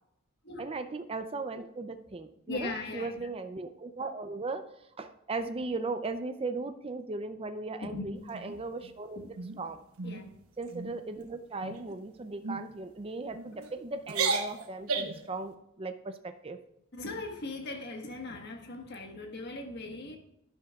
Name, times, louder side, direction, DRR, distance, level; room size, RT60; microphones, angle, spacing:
voice 1, 0.6-9.8 10.6-16.6, right 3 dB, 25° right, 8 dB, 0.5 m, -37 dB
voice 2, 2.5-3.3 7.8-8.1 9.1-9.3 10.0-10.3 16.9-20.2, left 2 dB, 50° left, 3 dB, 1.4 m, -39 dB
sound 1, 8.3-8.9 9.4-9.6 10.0-10.3 10.6-11.0 11.6-12.0 12.4-12.6 13.3-13.7 14.0-15.3, right 4 dB, 85° right, 1.1 m, -34 dB
11.0 x 10.5 x 2.4 m, 0.82 s
head